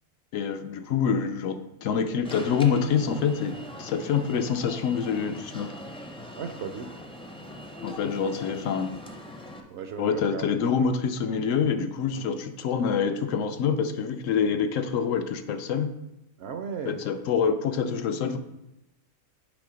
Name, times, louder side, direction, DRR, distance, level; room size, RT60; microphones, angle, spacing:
voice 1, 0.3-5.7 7.8-8.9 10.0-15.9 16.8-18.4, left 6 dB, 75° left, 8 dB, 0.9 m, -26 dB
Alarm, 2.2-9.6, left 1 dB, 10° left, 0.4 m, -42 dB
voice 2, 6.4-6.9 9.7-10.4 12.1-12.4 16.4-17.0, right 6 dB, 65° right, 7 dB, 0.7 m, -36 dB
8.4 x 3.4 x 5.0 m, 0.94 s
omnidirectional pair, 1.4 m